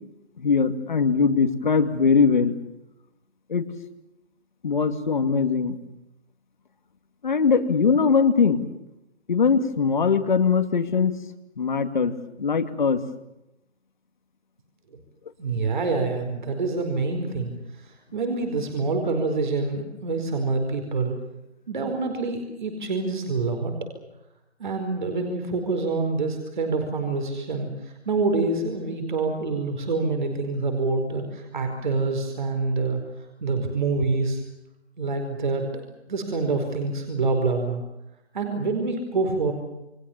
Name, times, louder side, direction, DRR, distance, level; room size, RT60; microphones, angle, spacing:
voice 1, 0.4-2.5 3.5-3.7 4.6-5.8 7.2-8.6 9.3-11.1 11.6-12.1 12.4-13.0, left 5 dB, 40° left, 9 dB, 2.4 m, -21 dB
voice 2, 15.4-17.5 18.1-21.2 21.7-23.7 24.6-33.0 33.4-34.4 35.0-37.8 38.3-39.5, right 3 dB, 45° right, 5 dB, 4.7 m, -26 dB
29.0 x 23.0 x 7.2 m, 0.90 s
figure-of-eight pair, 160°, 34 cm